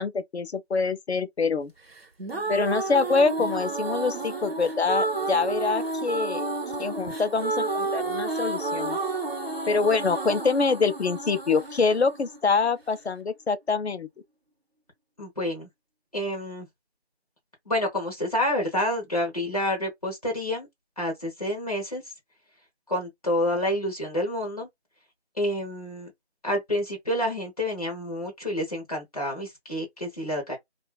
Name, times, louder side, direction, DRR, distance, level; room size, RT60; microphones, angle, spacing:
voice 1, 0.0-1.7 2.5-6.5 6.8-9.0 9.7-14.1, left 4 dB, 75° left, 0.6 m, -25 dB
sound 1, 2.0-13.0, right 3 dB, 65° right, 0.8 m, -31 dB
voice 2, 15.2-15.7 16.1-16.7 17.7-20.7 21.0-22.0 22.9-24.7 25.4-26.1 26.4-30.6, left 1 dB, 35° left, 0.8 m, -28 dB
2.5 x 2.3 x 2.2 m
figure-of-eight pair, 175°, 33 cm